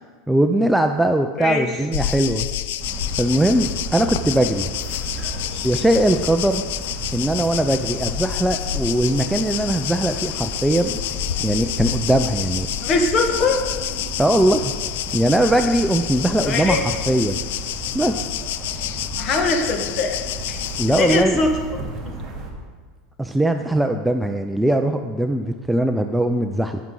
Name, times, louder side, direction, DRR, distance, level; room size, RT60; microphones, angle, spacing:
voice 1, 0.3-2.5 3.2-4.7 5.6-6.6 7.1-11.0 11.4-12.7 14.2-14.7 15.1-16.8 17.1-17.4 17.9-18.3 20.8-21.4 23.2-26.8, right 1 dB, 5° right, 6 dB, 0.4 m, -20 dB
voice 2, 1.4-1.7 12.8-13.6 16.4-16.8 19.2-20.2 20.5-20.6 20.9-21.6 22.0-22.1, left 3 dB, 35° left, 4 dB, 1.4 m, -21 dB
sound 1, 1.9-21.2, left 12 dB, 80° left, 0.4 m, -29 dB
sound 2, 2.8-22.5, right 2 dB, 30° right, 1.9 m, -34 dB
15.0 x 6.0 x 3.8 m, 1.5 s
supercardioid pair, 145°, 0 cm